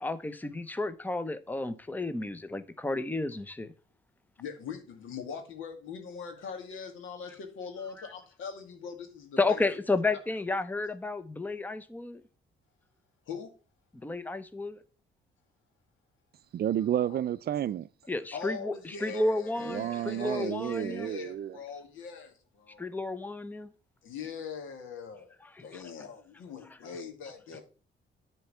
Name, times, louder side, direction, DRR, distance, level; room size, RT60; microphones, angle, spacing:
voice 1, 0.0-3.7 9.4-12.2 14.0-14.8 18.1-21.1 22.8-23.7, left 2 dB, 10° left, 0.8 m, -32 dB
voice 2, 4.4-9.6 10.1-10.2 13.3-13.5 17.1-17.2 18.3-22.8 24.0-27.6, left 6 dB, 85° left, 2.4 m, -42 dB
voice 3, 16.5-17.9 19.7-21.6, right 10 dB, 50° right, 0.5 m, -31 dB
10.0 x 4.5 x 7.1 m
cardioid pair, 90°, 20 cm